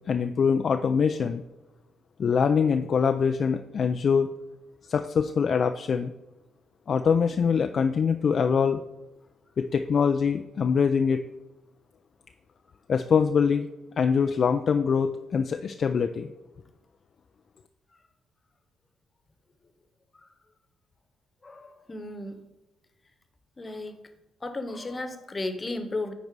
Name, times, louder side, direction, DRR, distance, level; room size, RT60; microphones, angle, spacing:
voice 1, 0.1-1.4 2.2-4.3 4.9-6.1 6.9-8.8 9.6-11.2 12.9-13.7 14.0-16.3, left 6 dB, 55° left, 7 dB, 0.3 m, -24 dB
voice 2, 21.4-22.4 23.6-24.0 24.4-26.1, left 2 dB, 30° left, 9 dB, 1.0 m, -34 dB
9.3 x 4.0 x 4.7 m, 0.99 s
hypercardioid pair, 45°, 0 cm